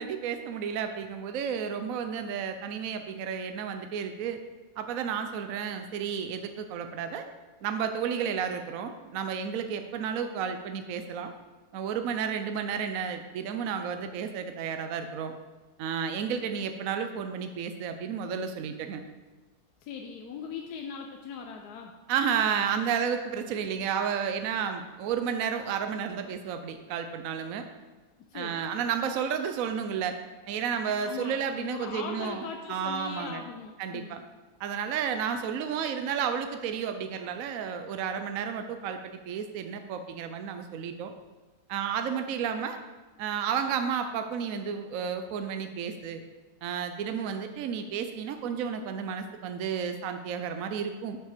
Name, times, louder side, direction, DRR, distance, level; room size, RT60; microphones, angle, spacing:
voice 1, 0.0-4.4 4.8-7.2 7.6-11.3 11.7-15.3 15.8-19.0 22.1-27.7 28.3-30.2 30.5-32.4 32.7-33.4 33.8-34.2 34.6-41.1 41.7-42.8 43.2-46.2 46.6-51.2, right 7 dB, 65° right, 7 dB, 1.0 m, -32 dB
voice 2, 19.8-22.0 28.3-28.6 31.0-34.2, left 6 dB, 80° left, 3 dB, 1.3 m, -40 dB
7.5 x 5.8 x 6.6 m, 1.3 s
omnidirectional pair, 1.6 m